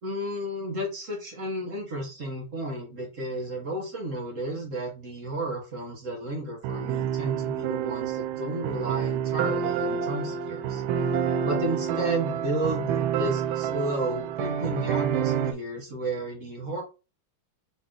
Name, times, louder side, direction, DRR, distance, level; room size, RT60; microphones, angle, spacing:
voice 1, 0.0-10.8 11.4-16.8, right 1 dB, 40° right, -1 dB, 1.6 m, -32 dB
sound 1, 6.6-15.5, right 8 dB, 80° right, 1.4 m, -28 dB
4.1 x 3.0 x 3.8 m, 0.30 s
omnidirectional pair, 2.2 m